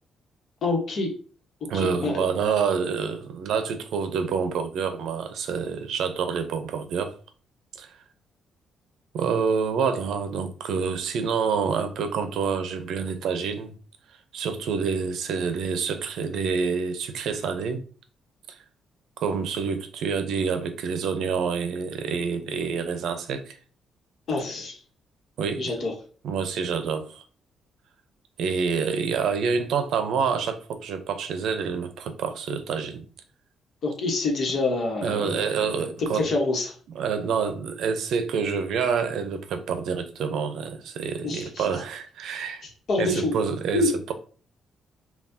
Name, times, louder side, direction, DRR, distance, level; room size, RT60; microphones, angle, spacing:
voice 1, 0.6-1.1 1.7-2.3 24.3-24.8 25.6-25.9 33.8-36.7 41.2-41.7 42.6-43.3 43.7-43.9, left 2 dB, 50° left, 1.1 m, -27 dB
voice 2, 1.7-7.1 7.8-7.9 9.1-13.7 14.3-17.8 18.5-18.6 19.2-23.6 25.4-25.7 26.2-27.2 28.4-33.0 35.0-36.2 37.0-42.6 43.0-44.1, right 6 dB, 75° right, 0.6 m, -27 dB
5.7 x 2.3 x 2.7 m
cardioid pair, 160°, 0 cm